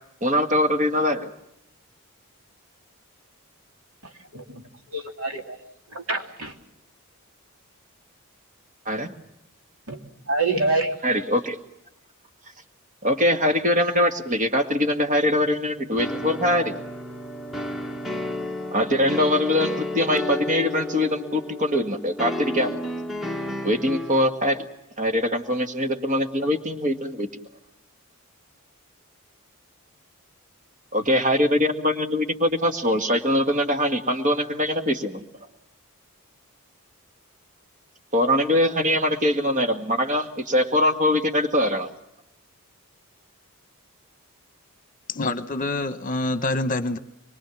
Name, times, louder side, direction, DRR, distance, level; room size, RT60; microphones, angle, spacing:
voice 1, 0.2-1.3 8.9-9.1 11.0-11.6 13.0-16.8 18.7-22.8 23.6-24.6 25.0-27.3 30.9-35.2 38.1-41.9, left 1 dB, 35° right, 6 dB, 1.9 m, -22 dB
voice 2, 4.0-4.6 4.9-5.6 5.9-6.6 9.9-10.0 10.3-10.9, right 3 dB, 70° right, 4 dB, 3.0 m, -27 dB
sound 1, 16.0-24.3, left 1 dB, ahead, 1.3 m, -32 dB
voice 3, 45.1-47.0, left 2 dB, 40° left, 11 dB, 1.1 m, -26 dB
25.0 x 23.5 x 7.2 m, 0.82 s
head